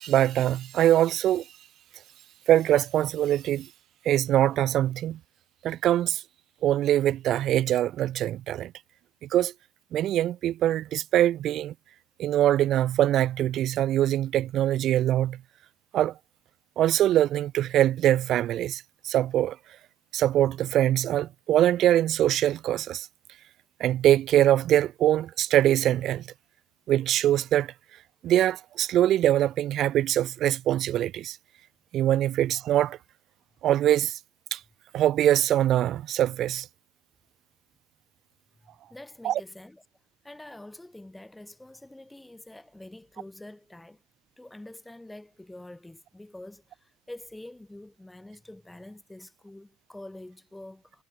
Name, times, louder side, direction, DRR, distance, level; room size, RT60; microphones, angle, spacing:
voice 1, 0.0-1.4 2.5-3.7 4.1-5.2 5.6-6.2 6.6-8.7 9.2-9.5 9.9-11.7 12.2-15.4 15.9-16.1 16.8-19.6 20.1-23.1 23.8-26.2 26.9-27.7 28.2-31.4 31.9-33.0 33.6-34.2 34.5-34.6 34.9-36.7 39.2-39.4, right 12 dB, 35° right, 0.5 m, -23 dB
voice 2, 38.6-39.8 40.2-44.0 44.4-51.0, left 1 dB, 5° left, 1.4 m, -46 dB
supercardioid pair, 150°, 0 cm